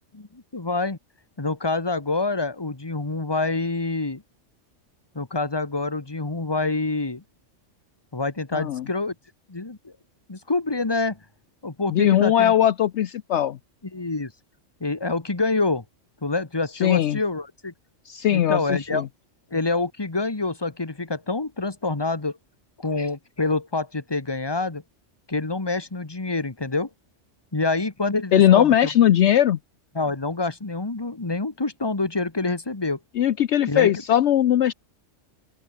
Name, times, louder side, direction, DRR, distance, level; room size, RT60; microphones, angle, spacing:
voice 1, 0.1-1.0 1.4-4.2 5.1-7.2 8.1-9.1 9.5-9.9 10.3-11.2 11.6-12.5 13.9-14.3 14.8-15.8 16.2-17.7 18.3-19.1 19.5-22.4 22.8-24.8 25.3-26.9 27.5-28.9 29.9-33.0 33.7-33.9, left 3 dB, 20° left, 1.6 m, -26 dB
voice 2, 8.5-8.9 11.9-13.6 16.8-17.2 18.1-19.1 28.3-29.6 33.2-34.7, left 11 dB, 65° left, 0.9 m, -19 dB
open air
omnidirectional pair, 1.3 m